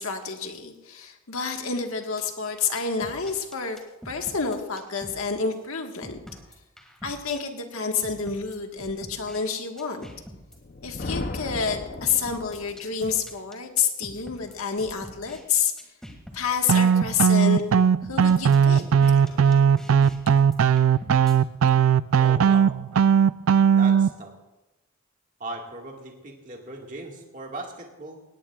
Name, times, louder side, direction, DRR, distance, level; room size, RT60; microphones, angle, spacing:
voice 1, 0.0-3.8 4.0-6.2 7.0-10.1 10.8-15.7 16.3-17.6 18.0-18.8 19.1-19.8, left 6 dB, 85° left, 4 dB, 1.5 m, -29 dB
sound 1, 2.8-5.2 5.5-5.6 6.0-7.4 8.0-9.4 9.8-10.6 11.0-11.2 12.0-15.4 15.8-17.2 17.5-17.6 18.0-21.4, equal, 5° left, 1.9 m, -44 dB
Thunder, 10.5-12.9, left 2 dB, 45° left, 0.7 m, -35 dB
sound 2, 16.7-24.1, right 7 dB, 85° right, 0.4 m, -18 dB
voice 2, 22.2-22.7 23.7-24.3 25.4-28.2, right 2 dB, 40° right, 0 dB, 1.8 m, -38 dB
18.5 x 17.5 x 2.4 m, 1.0 s
head